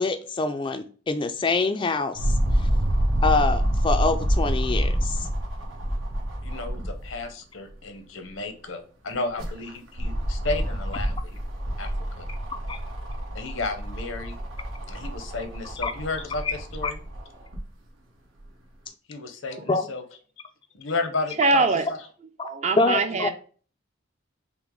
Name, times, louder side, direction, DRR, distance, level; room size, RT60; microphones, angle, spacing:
voice 1, 0.0-2.3 3.2-5.3 12.7-12.8 15.8-15.9 16.4-16.5 16.8-16.9 19.7-19.9 22.8-23.3, left 3 dB, 25° left, 0.3 m, -25 dB
sound 1, 2.2-7.2 7.7-7.8 9.1-17.6 18.4-18.5, equal, 85° right, 1.2 m, -27 dB
voice 2, 6.4-11.4 11.8-11.9 12.2-12.3 13.3-14.4 14.9-17.0 19.1-20.0 20.7-22.0 23.1-23.2, left 3 dB, 85° left, 0.8 m, -33 dB
voice 3, 21.4-21.8 22.4-23.3, right 3 dB, 35° right, 0.5 m, -22 dB
5.7 x 2.1 x 3.8 m
head